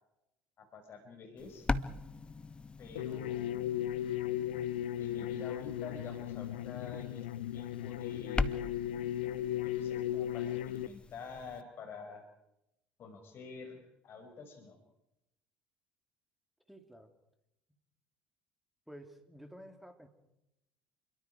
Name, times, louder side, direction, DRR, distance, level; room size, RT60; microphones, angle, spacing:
voice 1, 0.6-1.7 2.8-3.7 5.0-7.3 7.5-8.5 9.6-12.2 13.0-14.8, left 4 dB, 45° left, 4 dB, 5.9 m, -48 dB
sound 1, 1.4-11.6, left 3 dB, 20° left, 1.2 m, -41 dB
sound 2, 3.0-10.9, left 12 dB, 70° left, 0.9 m, -36 dB
voice 2, 16.7-17.1 18.9-20.1, equal, ahead, 6 dB, 3.6 m, -52 dB
29.5 x 23.0 x 4.8 m, 0.87 s
figure-of-eight pair, 60°, 6 cm